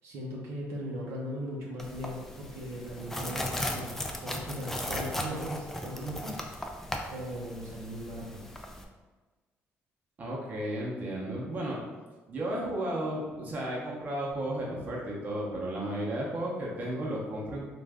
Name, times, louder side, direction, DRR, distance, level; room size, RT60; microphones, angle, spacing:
voice 1, 0.0-6.4 7.1-8.4, equal, 75° right, -3 dB, 0.7 m, -38 dB
sound 1, 1.8-8.8, left 1 dB, 5° left, 0.3 m, -37 dB
voice 2, 10.2-11.8 12.3-17.7, right 1 dB, 35° right, -4 dB, 0.8 m, -33 dB
3.2 x 2.5 x 3.5 m, 1.3 s
cardioid pair, 150°, 5 cm